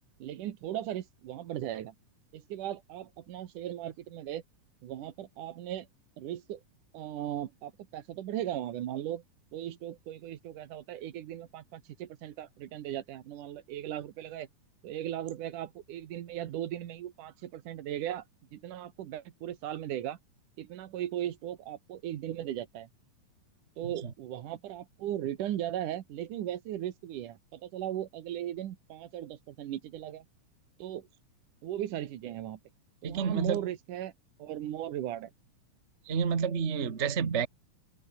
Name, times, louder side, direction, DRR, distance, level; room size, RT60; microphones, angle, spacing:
voice 1, 0.2-1.9 2.3-4.4 4.8-5.9 6.2-6.6 6.9-9.2 9.5-14.5 14.8-18.2 18.5-20.2 20.6-22.9 23.8-30.3 30.8-31.1 31.6-32.6 33.0-34.1 34.4-35.3, right 12 dB, 90° right, 3.0 m, -37 dB
voice 2, 33.0-33.6 36.1-37.5, right 6 dB, 35° right, 1.2 m, -29 dB
open air
omnidirectional pair, 3.5 m